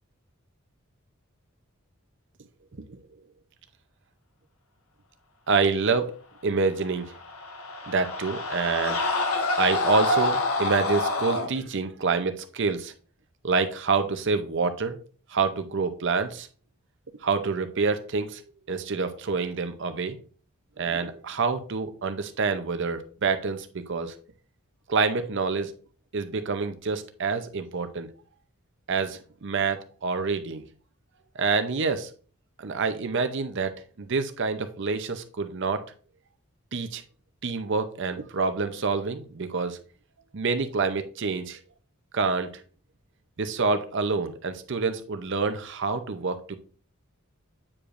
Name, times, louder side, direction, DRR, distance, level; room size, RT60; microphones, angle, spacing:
voice 1, 5.5-6.1 6.4-7.1 7.9-9.1 9.6-12.9 13.4-15.0 15.3-16.5 17.2-18.4 18.7-20.2 20.8-24.1 24.9-25.7 26.1-28.1 28.9-30.6 31.4-32.1 32.6-35.8 36.7-37.0 37.4-39.8 40.3-41.6 42.1-42.5 43.4-46.6, right 4 dB, 60° right, 9 dB, 0.7 m, -27 dB
sound 1, 7.0-11.5, left 2 dB, 85° left, 1.1 m, -27 dB
8.5 x 4.9 x 2.5 m, 0.42 s
head